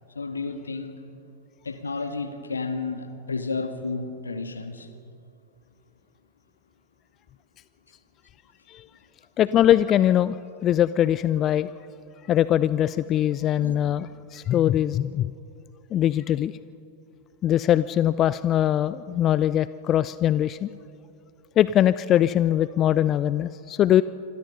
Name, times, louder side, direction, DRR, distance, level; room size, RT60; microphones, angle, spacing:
voice 1, 0.2-1.0 1.6-4.9 13.6-13.8, left 4 dB, 75° left, 1.8 m, -32 dB
voice 2, 9.4-10.3 10.6-11.7 12.3-15.3 15.9-16.5 17.4-20.7 21.6-24.0, left 11 dB, 30° left, 0.5 m, -22 dB
27.0 x 26.0 x 5.5 m
figure-of-eight pair, 90°, 0 cm